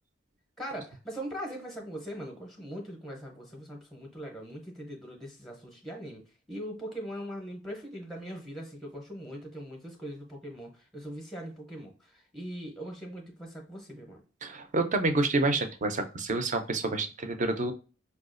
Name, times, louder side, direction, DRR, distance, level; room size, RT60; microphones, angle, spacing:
voice 1, 0.6-14.2, equal, ahead, 1 dB, 0.6 m, -41 dB
voice 2, 14.4-17.7, right 2 dB, 40° right, 7 dB, 0.5 m, -28 dB
4.7 x 2.3 x 2.4 m, 0.35 s
head